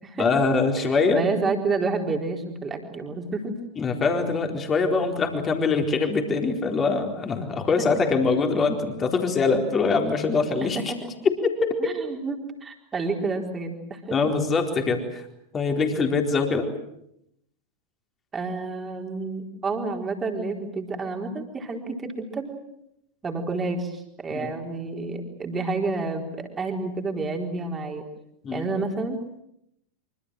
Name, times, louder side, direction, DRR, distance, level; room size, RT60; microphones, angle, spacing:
voice 1, 0.2-1.2 3.8-10.9 11.2-11.9 14.1-15.3 15.5-16.7 24.3-24.5 28.4-28.6, left 4 dB, 20° left, 4 dB, 4.2 m, -23 dB
voice 2, 1.1-3.6 10.9-11.0 11.8-14.1 18.3-22.6 23.2-28.0 28.5-29.2, right 3 dB, 20° right, 3 dB, 4.3 m, -29 dB
25.5 x 25.0 x 7.7 m, 0.79 s
figure-of-eight pair, 90°, 0 cm